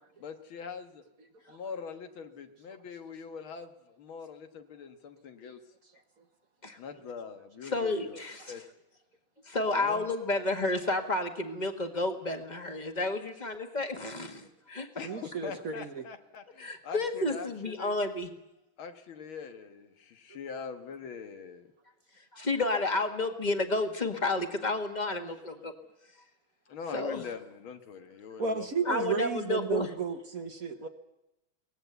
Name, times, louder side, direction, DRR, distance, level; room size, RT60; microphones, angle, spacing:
voice 1, 0.2-1.0 1.5-5.6 6.8-8.6 9.7-10.1 15.0-18.0 18.8-21.7 26.7-28.9, left 6 dB, 80° left, 7 dB, 2.2 m, -43 dB
voice 2, 7.6-8.5 9.5-14.9 16.6-18.3 22.3-25.7 26.9-27.2 28.9-29.9, left 2 dB, 20° left, 6 dB, 1.7 m, -31 dB
voice 3, 15.0-16.0 28.4-30.9, right 5 dB, 50° right, 7 dB, 1.4 m, -33 dB
23.0 x 18.5 x 8.2 m, 0.93 s
omnidirectional pair, 2.2 m